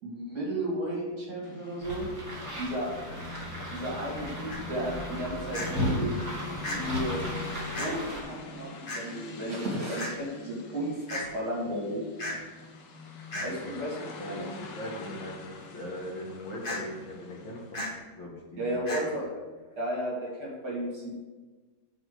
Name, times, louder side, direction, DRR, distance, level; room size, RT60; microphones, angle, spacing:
voice 1, 0.0-2.1 2.6-3.2 3.5-6.2 6.7-7.2 7.8-12.1 13.4-14.0 14.3-14.5 18.6-19.3 19.8-21.2, right 1 dB, 45° right, -4 dB, 2.9 m, -33 dB
sound 1, 1.4-17.9, left 4 dB, 90° left, 2.0 m, -44 dB
sound 2, 1.8-8.2, equal, 15° right, 1.8 m, -35 dB
sound 3, 4.5-4.6 5.5-5.7 6.6-6.8 7.7-7.9 8.9-9.0 10.0-10.1 11.1-11.2 12.2-12.4 13.3-13.5 16.6-16.8 17.7-17.9 18.9-19.0, left 1 dB, 25° left, 1.4 m, -33 dB
voice 2, 13.3-13.7 14.2-17.8 18.1-19.2, equal, 60° left, -2 dB, 2.1 m, -40 dB
6.2 x 5.4 x 6.8 m, 1.3 s
omnidirectional pair, 2.4 m